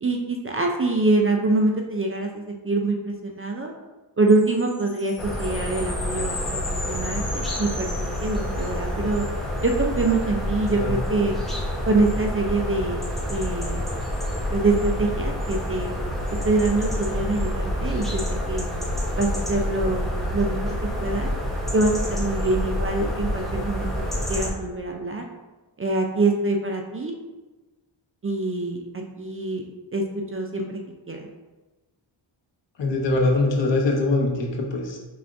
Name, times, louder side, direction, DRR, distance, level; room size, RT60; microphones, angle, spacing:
voice 1, 0.0-3.7 4.2-9.3 9.6-11.4 11.9-13.0 13.3-13.9 14.5-16.0 16.4-18.7 19.2-20.7 21.0-21.3 21.7-23.9 24.3-25.2 25.8-27.1 28.2-29.6 29.9-30.8 31.1-31.3, right 2 dB, 30° right, 2 dB, 0.4 m, -25 dB
sound 1, 4.3-8.9, left 3 dB, 40° left, 1.0 m, -36 dB
sound 2, 5.2-24.5, equal, ahead, 1.0 m, -28 dB
voice 2, 32.8-35.0, left 2 dB, 60° left, 0 dB, 1.0 m, -22 dB
4.9 x 3.3 x 2.5 m, 1.2 s
cardioid pair, 70°, 49 cm